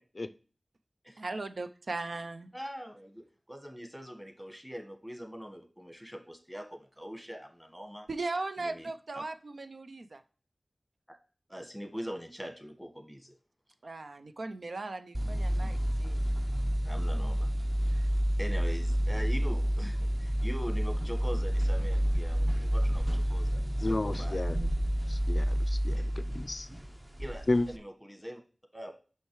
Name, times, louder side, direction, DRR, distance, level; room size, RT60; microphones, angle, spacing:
voice 1, 1.2-2.5 8.1-10.2 13.8-16.3, right 3 dB, 80° right, 9 dB, 0.4 m, -38 dB
voice 2, 2.5-8.1 8.6-8.9 9.1-9.2 11.5-13.3 16.8-17.5 17.9-18.1 18.4-24.5 25.9-26.0 27.2-28.4 28.7-28.9, equal, 5° right, 5 dB, 1.3 m, -42 dB
sound 1, 15.1-27.8, equal, 25° right, 0.7 m, -29 dB
voice 3, 23.8-24.6 25.1-26.0 26.3-26.7 27.5-27.7, left 2 dB, 55° left, 12 dB, 0.4 m, -31 dB
6.3 x 5.5 x 3.1 m, 0.38 s
wide cardioid pair, 50°, 0 cm